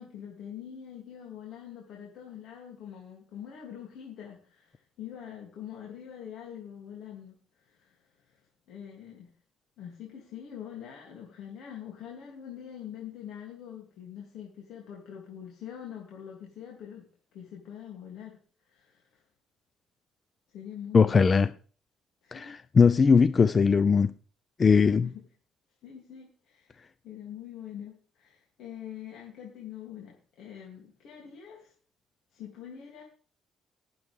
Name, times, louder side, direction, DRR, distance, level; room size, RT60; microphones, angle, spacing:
voice 1, 0.0-8.4 8.7-9.3 9.8-17.1 17.3-18.4 18.7-19.2 20.5-21.4 22.2-22.5 22.8-23.0 24.7-25.2 25.8-31.7 32.3-33.0, left 9 dB, 75° left, 2.9 m, -44 dB
voice 2, 20.9-21.5 22.3-24.1 24.6-25.1, left 5 dB, 35° left, 0.5 m, -20 dB
19.5 x 7.8 x 3.6 m
cardioid pair, 115°, 0 cm